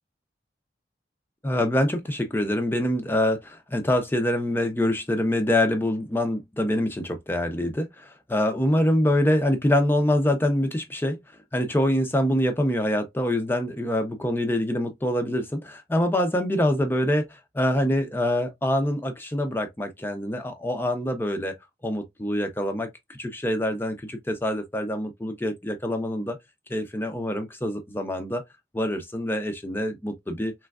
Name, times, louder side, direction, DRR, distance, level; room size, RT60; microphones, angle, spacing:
voice 1, 1.4-11.2 11.5-21.5 21.8-26.4 26.7-28.4 28.7-30.5, left 1 dB, 10° left, 0.5 m, -25 dB
3.4 x 3.1 x 2.3 m
head